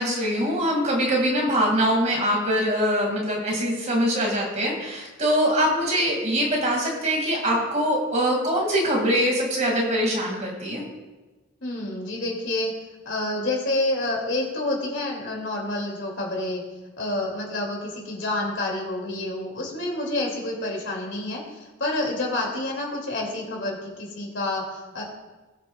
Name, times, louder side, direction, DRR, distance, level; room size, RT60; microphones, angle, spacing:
voice 1, 0.0-10.8, equal, 35° right, -1 dB, 2.2 m, -23 dB
voice 2, 11.6-12.7 13.0-16.6 17.0-25.0, left 2 dB, 65° left, -1 dB, 2.5 m, -28 dB
20.0 x 6.7 x 2.3 m, 1.2 s
head